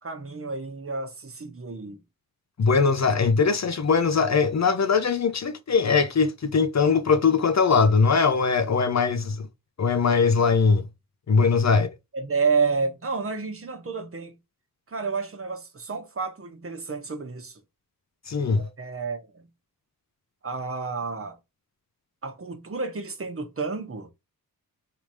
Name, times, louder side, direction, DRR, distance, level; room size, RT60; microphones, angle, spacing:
voice 1, 0.0-2.0 11.3-11.8 12.1-14.4 14.9-17.6 18.5-19.5 20.4-21.4 22.2-24.1, right 4 dB, 40° right, 1.2 m, -30 dB
voice 2, 2.6-9.5 9.8-10.8 11.3-11.9 18.3-18.7, left 5 dB, 50° left, 0.8 m, -21 dB
3.6 x 3.0 x 4.8 m
cardioid pair, 65°, 36 cm